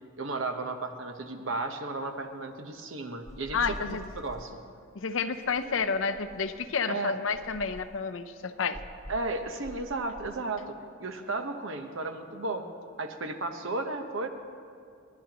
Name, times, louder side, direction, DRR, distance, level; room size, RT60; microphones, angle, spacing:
voice 1, 0.2-4.6 6.9-7.1 9.1-12.6 13.0-14.3, right 3 dB, 70° right, 6 dB, 1.0 m, -34 dB
sound 1, 3.3-4.5 5.4-6.7 7.3-8.0 8.7-10.4, equal, ahead, 1.4 m, -46 dB
voice 2, 3.5-4.0 5.0-8.8, left 5 dB, 70° left, 10 dB, 0.7 m, -30 dB
29.5 x 10.5 x 3.0 m, 2.3 s
head